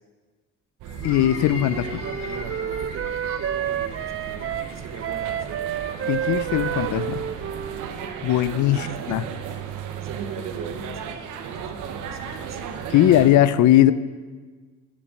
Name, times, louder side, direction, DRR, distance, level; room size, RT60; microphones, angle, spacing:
sound 1, 0.8-8.3, left 5 dB, 45° left, 1.2 m, -43 dB
sound 2, 0.8-13.3, right 7 dB, 90° right, 0.9 m, -35 dB
voice 1, 1.0-2.0 6.1-7.2 8.2-9.2 12.9-13.9, left 12 dB, 75° left, 15 dB, 0.5 m, -19 dB
Wind instrument woodwind instrument, 1.0-9.0, right 9 dB, 45° right, 0.5 m, -30 dB
voice 2, 1.7-5.6 8.7-12.6, right 6 dB, 60° right, 6 dB, 1.1 m, -41 dB
7.5 x 7.2 x 6.4 m, 1.4 s
cardioid pair, 90°, 30 cm